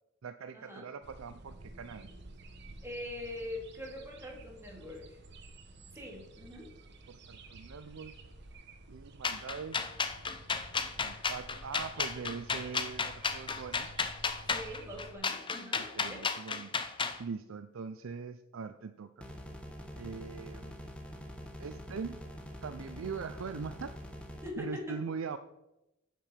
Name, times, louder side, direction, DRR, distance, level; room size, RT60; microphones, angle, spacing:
voice 1, 0.2-2.1 7.1-8.1 8.9-9.8 10.8-13.9 15.8-16.7 17.2-19.2 20.0-20.8 21.6-22.2 22.6-23.9 24.6-25.4, right 5 dB, 75° right, 10 dB, 0.5 m, -42 dB
sound 1, 1.0-15.1, right 2 dB, 60° right, 1.2 m, -52 dB
voice 2, 2.8-5.2 6.0-6.7 14.5-16.2 24.4-25.0, left 1 dB, 15° right, -1 dB, 2.5 m, -43 dB
sound 2, 9.2-17.2, left 5 dB, 25° left, 0.7 m, -33 dB
sound 3, 19.2-24.5, equal, 5° left, 1.3 m, -45 dB
8.5 x 7.3 x 5.7 m, 0.92 s
head